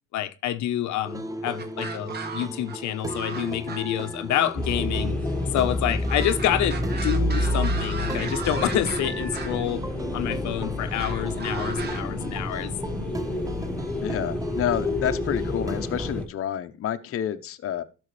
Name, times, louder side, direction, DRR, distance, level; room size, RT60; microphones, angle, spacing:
voice 1, 0.1-5.2 5.5-9.8 10.1-12.7, left 12 dB, 75° left, 1.0 m, -28 dB
sound 1, 1.0-16.1, right 1 dB, 10° right, 0.9 m, -37 dB
sound 2, 1.6-2.8 3.1-4.3 6.1-9.7 11.0-12.0, right 4 dB, 35° right, 1.8 m, -36 dB
sound 3, 4.6-16.3, left 1 dB, 5° left, 1.8 m, -29 dB
voice 2, 14.0-17.8, left 10 dB, 50° left, 0.9 m, -29 dB
12.5 x 6.4 x 3.2 m
cardioid pair, 115°, 29 cm